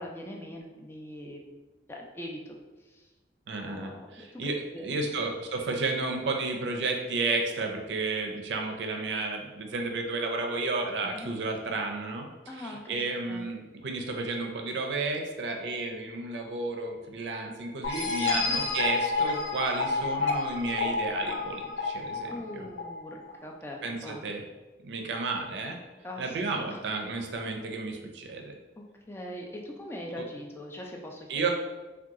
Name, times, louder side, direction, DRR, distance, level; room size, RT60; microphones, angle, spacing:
voice 1, 0.0-1.4 1.9-2.6 2.9-3.1 3.6-4.5 4.7-5.2 11.0-11.3 12.5-13.0 13.3-13.4 18.4-18.5 22.3-24.3 26.0-26.4 26.7-26.8 28.8-31.5, left 1 dB, 15° left, 0 dB, 0.3 m, -42 dB
voice 2, 3.5-4.6 4.8-12.3 12.5-22.7 23.8-24.4 24.8-25.8 26.2-28.6 31.3-31.5, right 3 dB, 80° right, 3 dB, 0.5 m, -32 dB
sound 1, 17.8-23.3, left 4 dB, 85° left, 0.4 m, -30 dB
2.8 x 2.3 x 3.5 m, 1.2 s
head